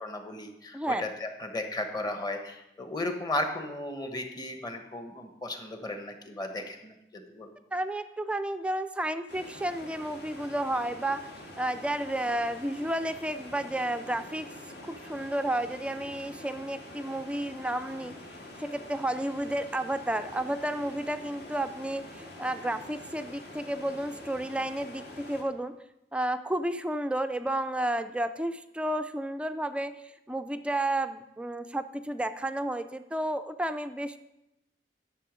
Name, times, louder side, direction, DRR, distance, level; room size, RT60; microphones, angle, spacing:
voice 1, 0.0-7.5, left 2 dB, 25° left, 5 dB, 1.1 m, -35 dB
voice 2, 7.7-11.3 11.6-14.5 14.8-18.1 18.6-25.8 26.1-34.2, right 1 dB, 5° right, 9 dB, 0.3 m, -32 dB
sound 1, 9.3-25.4, left 1 dB, 60° left, 1.9 m, -46 dB
11.0 x 6.8 x 5.1 m, 0.89 s
head